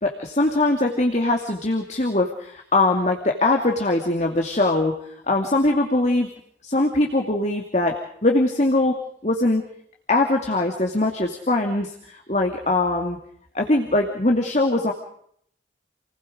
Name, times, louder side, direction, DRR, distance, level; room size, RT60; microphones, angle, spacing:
voice 1, 0.0-5.0 5.3-6.3 6.6-9.6 10.1-13.2 13.5-14.9, left 2 dB, 40° left, 2 dB, 2.5 m, -22 dB
29.5 x 20.0 x 5.0 m, 0.66 s
head